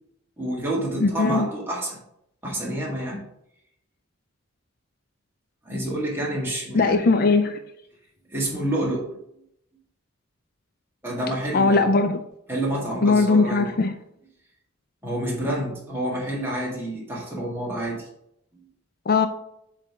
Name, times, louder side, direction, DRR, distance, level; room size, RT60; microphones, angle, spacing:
voice 1, 0.4-2.0 2.4-3.2 5.7-7.2 8.3-9.1 11.0-11.9 12.5-13.7 15.0-18.1, right 1 dB, 10° right, 1.9 m, -28 dB
voice 2, 1.0-1.5 6.7-7.6 11.5-12.2 13.0-13.9 19.1-19.3, left 3 dB, 50° left, 0.4 m, -19 dB
7.5 x 3.3 x 5.0 m
head